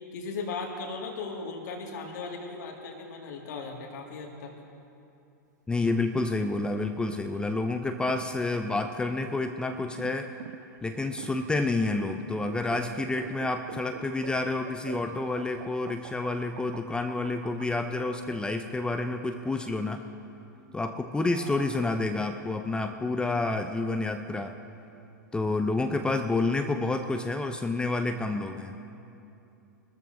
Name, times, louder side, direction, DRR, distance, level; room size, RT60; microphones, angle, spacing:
voice 1, 0.1-4.5 21.3-21.7, left 4 dB, 65° left, 0 dB, 2.0 m, -37 dB
voice 2, 5.7-10.3 10.8-20.0 20.7-24.5 25.3-28.8, left 2 dB, 10° left, 7 dB, 0.5 m, -29 dB
sound 1, 5.7-18.2, right 11 dB, 60° right, 0.5 m, -46 dB
22.5 x 13.5 x 2.7 m, 2.7 s
hypercardioid pair, 110°, 10 cm